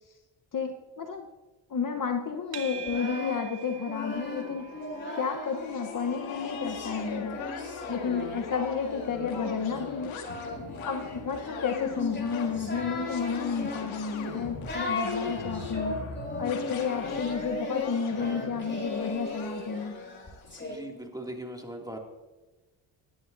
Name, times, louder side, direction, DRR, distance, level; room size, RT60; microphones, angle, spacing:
voice 1, 0.5-1.3 1.7-4.7 5.2-7.4 7.9-10.2 10.9-16.0 16.4-20.0, left 6 dB, 45° left, 4 dB, 1.1 m, -31 dB
sound 1, 2.5-19.7, right 9 dB, 60° right, 1.3 m, -51 dB
Singing, 2.7-5.7 6.3-20.8, left 2 dB, 25° left, 3.3 m, -37 dB
sound 2, 3.6-20.7, left 5 dB, 80° left, 1.8 m, -41 dB
voice 2, 20.6-22.0, right 1 dB, 10° right, 2 dB, 2.4 m, -39 dB
17.5 x 11.0 x 2.7 m, 1.1 s
supercardioid pair, 65°, 47 cm